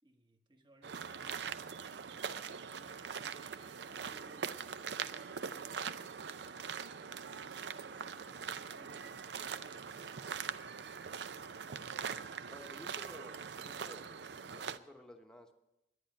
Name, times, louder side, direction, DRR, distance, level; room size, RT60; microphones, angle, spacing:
voice 1, 0.0-1.5 1.9-4.5 7.4-10.4, right 1 dB, 25° right, 5 dB, 1.2 m, -64 dB
sound 1, 0.8-14.8, right 6 dB, 75° right, 0.5 m, -42 dB
voice 2, 12.5-15.5, left 1 dB, 5° left, 3 dB, 0.9 m, -54 dB
11.0 x 9.8 x 8.9 m, 0.92 s
head